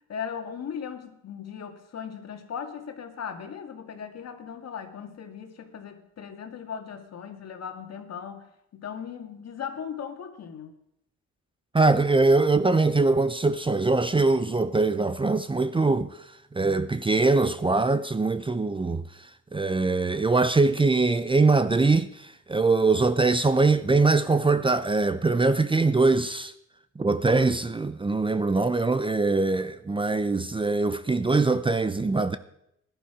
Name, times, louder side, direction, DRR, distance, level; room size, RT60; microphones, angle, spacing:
voice 1, 0.1-8.5 8.7-10.7, left 7 dB, 55° left, 2.0 m, -38 dB
voice 2, 11.7-16.1 16.5-19.0 19.5-26.5 27.0-32.4, right 3 dB, 15° right, 0.6 m, -22 dB
16.0 x 11.5 x 5.0 m
cardioid pair, 90°, 30 cm